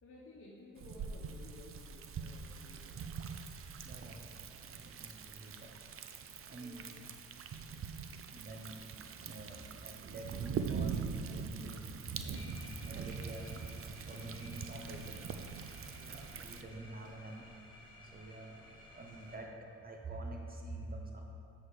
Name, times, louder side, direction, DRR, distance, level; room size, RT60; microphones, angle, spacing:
voice 1, 0.0-3.2 6.5-6.9 7.5-7.7 15.9-16.2, left 2 dB, 50° left, -5 dB, 1.3 m, -56 dB
Thunder, 0.8-16.6, right 6 dB, 45° right, 0.6 m, -43 dB
voice 2, 3.8-5.8 6.5-6.9 8.3-8.9 9.2-12.1 12.4-15.2 16.0-21.2, right 2 dB, 30° right, 1 dB, 0.9 m, -48 dB
sound 1, 12.3-19.4, left 1 dB, 15° left, 2.2 m, -55 dB
7.5 x 6.4 x 5.0 m, 2.4 s
cardioid pair, 90°, 30 cm